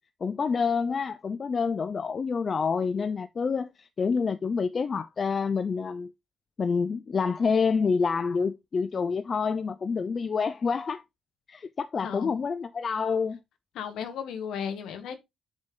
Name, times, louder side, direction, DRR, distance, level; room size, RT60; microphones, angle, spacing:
voice 1, 0.2-6.1 6.6-11.0 11.5-13.4, left 5 dB, 40° left, 0.5 m, -27 dB
voice 2, 13.7-15.2, left 7 dB, 65° left, 1.5 m, -35 dB
8.6 x 4.0 x 3.8 m
hypercardioid pair, 50°, 0 cm